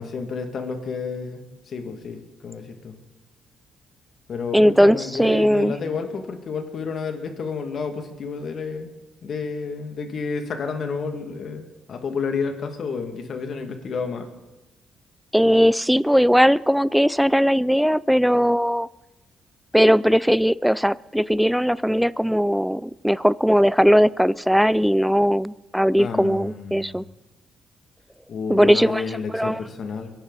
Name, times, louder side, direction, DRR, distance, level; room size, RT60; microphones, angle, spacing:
voice 1, 0.0-2.9 4.3-8.9 9.2-14.3 26.0-27.0 28.3-30.1, left 5 dB, 55° left, 5 dB, 2.3 m, -30 dB
voice 2, 4.5-5.8 15.3-18.9 19.7-27.0 28.5-29.0 29.3-29.6, equal, ahead, 20 dB, 0.4 m, -19 dB
23.5 x 11.5 x 4.2 m, 1.1 s
cardioid pair, 90°, 0 cm